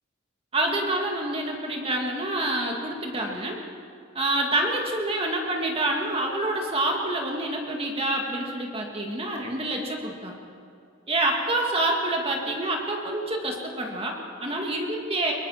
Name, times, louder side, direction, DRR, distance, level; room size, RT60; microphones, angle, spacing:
voice 1, 0.5-3.6 4.1-10.3 11.1-15.3, right 1 dB, 30° right, 0 dB, 2.2 m, -27 dB
22.5 x 22.5 x 5.8 m, 2.5 s
head